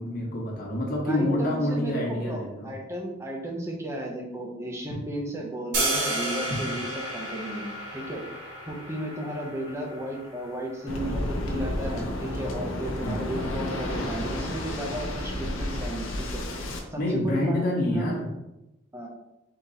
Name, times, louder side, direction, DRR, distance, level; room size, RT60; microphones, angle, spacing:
voice 1, 0.0-2.7 13.0-13.2 17.0-18.3, left 1 dB, 45° left, -4 dB, 1.1 m, -27 dB
voice 2, 1.1-6.9 7.1-7.7 7.9-8.3 8.7-16.4 16.9-18.2 18.9-19.1, right 1 dB, 15° right, -1 dB, 0.7 m, -34 dB
sound 1, 5.7-11.8, right 1 dB, 75° right, 1.1 m, -33 dB
Waves surf, 10.9-16.8, left 1 dB, 85° left, 0.7 m, -31 dB
3.9 x 2.9 x 4.0 m, 0.92 s
head